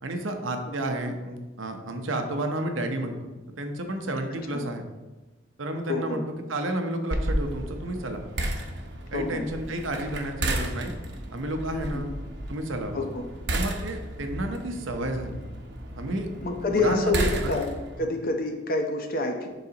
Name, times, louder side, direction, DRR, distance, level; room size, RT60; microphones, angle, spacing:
voice 1, 0.0-3.2 3.6-4.8 5.6-6.2 6.5-8.2 9.1-10.9 11.3-12.1 12.5-13.0 13.5-15.4 16.0-16.3 16.7-17.6 18.0-18.1, right 1 dB, 85° right, 4 dB, 0.9 m, -31 dB
voice 2, 5.9-6.2 9.1-9.5 11.7-12.1 12.9-13.2 16.4-17.7 18.0-19.5, left 2 dB, 50° left, 4 dB, 0.8 m, -28 dB
sound 1, 7.1-18.0, right 1 dB, 60° right, 0.9 m, -33 dB
10.5 x 4.0 x 2.9 m, 1.2 s
head